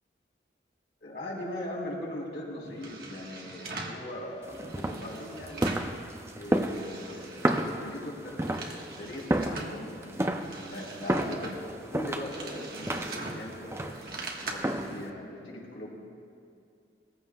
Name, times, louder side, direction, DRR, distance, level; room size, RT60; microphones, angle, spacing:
voice 1, 1.0-5.7 6.3-11.6 11.9-14.0 14.4-16.0, left 1 dB, 90° left, -5 dB, 3.5 m, -40 dB
sound 1, 2.6-4.0 4.5-6.0 6.3-7.8 8.2-9.8 10.2-14.5, right 3 dB, 55° right, 1.5 m, -42 dB
sound 2, 4.4-15.1, right 1 dB, 15° right, 0.5 m, -32 dB
19.5 x 15.0 x 2.4 m, 2.4 s
head